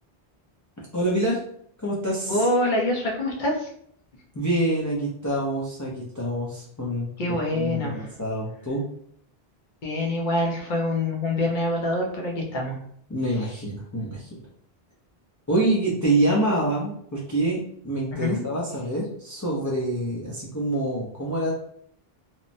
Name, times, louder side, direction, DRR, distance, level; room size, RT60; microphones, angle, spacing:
voice 1, 0.8-1.4 1.8-2.4 4.3-8.8 13.1-14.4 15.5-21.5, right 1 dB, 30° left, -5 dB, 0.3 m, -26 dB
voice 2, 2.3-3.7 7.2-8.1 9.8-12.8 18.1-18.4, left 1 dB, 55° left, -1 dB, 0.8 m, -25 dB
3.0 x 2.1 x 2.6 m, 0.65 s
omnidirectional pair, 1.0 m